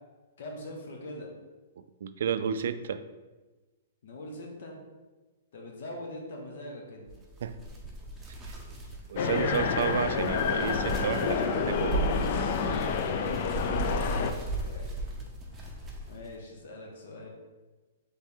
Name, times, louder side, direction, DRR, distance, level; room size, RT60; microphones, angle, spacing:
voice 1, 0.4-1.3 4.0-4.7 5.5-7.1 12.8-14.9 15.5-15.8 16.1-17.3, left 1 dB, 65° left, 0 dB, 1.1 m, -43 dB
voice 2, 2.0-3.0 7.4-7.6 8.5-8.6 9.1-12.3, right 7 dB, 70° right, 11 dB, 0.3 m, -31 dB
sound 1, 7.1-16.3, right 2 dB, 10° right, 0.8 m, -36 dB
sound 2, 9.2-14.3, left 6 dB, 50° left, 0.4 m, -29 dB
3.4 x 3.4 x 4.4 m, 1.2 s
hypercardioid pair, 140°, 0 cm